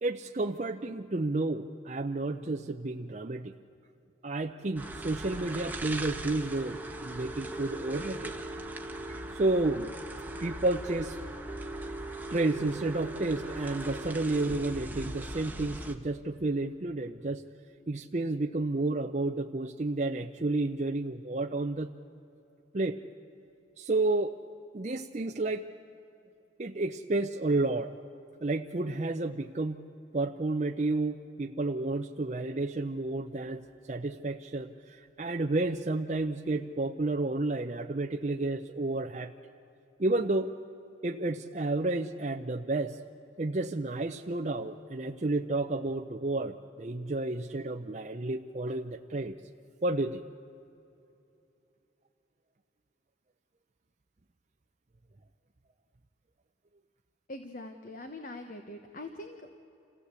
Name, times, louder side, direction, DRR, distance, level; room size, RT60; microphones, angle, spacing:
voice 1, 0.0-3.5 4.2-8.3 9.1-9.9 10.4-11.2 12.3-17.4 17.9-21.9 22.7-23.0 23.8-24.4 24.7-25.7 26.6-27.9 28.4-29.8 30.1-39.3 40.0-40.5 41.0-43.0 43.4-49.4 49.8-50.2, right 2 dB, 35° right, 4 dB, 0.6 m, -31 dB
sound 1, 4.8-15.9, right 1 dB, 10° right, 1.1 m, -39 dB
voice 2, 57.3-59.5, left 2 dB, 45° left, 6 dB, 1.1 m, -43 dB
27.0 x 16.0 x 8.2 m, 2.9 s
head